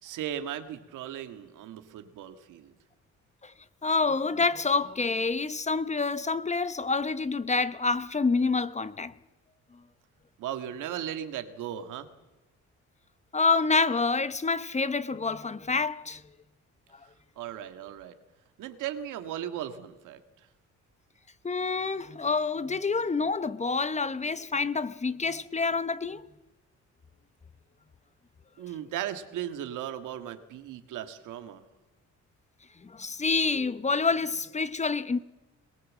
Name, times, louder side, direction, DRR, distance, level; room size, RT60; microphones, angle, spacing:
voice 1, 0.0-2.7 10.4-12.1 17.3-18.1 18.6-20.2 28.6-31.6, right 10 dB, 90° right, 1.8 m, -37 dB
voice 2, 3.8-9.1 13.3-16.2 21.4-26.2 32.8-35.2, left 4 dB, 25° left, 0.8 m, -27 dB
21.5 x 18.5 x 7.5 m
cardioid pair, 90°, 30 cm